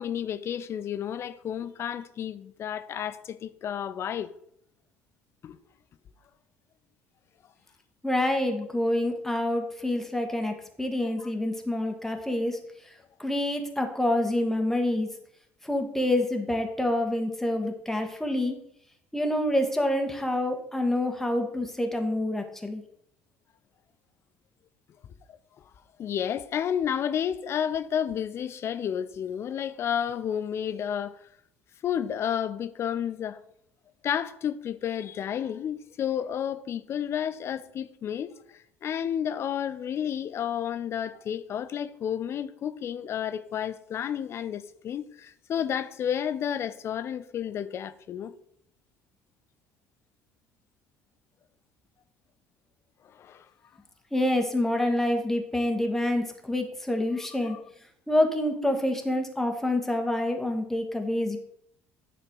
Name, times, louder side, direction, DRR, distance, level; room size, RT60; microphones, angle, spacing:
voice 1, 0.0-4.3 5.4-5.6 11.0-11.3 26.0-31.2 31.8-33.4 34.0-48.3 53.1-53.5 57.4-57.6, left 9 dB, 40° left, 0.5 m, -31 dB
voice 2, 8.0-12.6 13.2-15.1 15.6-18.6 19.1-22.8 54.1-57.6 58.1-61.4, left 1 dB, 5° left, 1.5 m, -27 dB
10.0 x 4.2 x 4.6 m
figure-of-eight pair, 55°, 7 cm